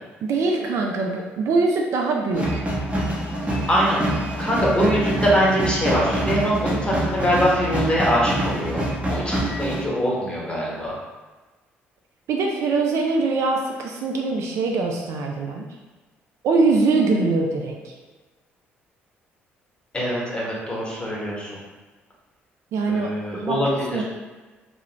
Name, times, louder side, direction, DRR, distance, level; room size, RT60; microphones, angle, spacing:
voice 1, 0.2-2.6 12.3-15.6 16.4-17.8 22.7-24.0, right 3 dB, 50° right, 1 dB, 0.3 m, -23 dB
sound 1, 2.3-9.9, right 1 dB, 20° right, 0.8 m, -26 dB
voice 2, 3.7-8.8 9.1-10.9 19.9-21.6 22.9-24.0, equal, 15° left, -5 dB, 1.1 m, -23 dB
3.4 x 2.0 x 2.9 m, 1.2 s
figure-of-eight pair, 45°, 6 cm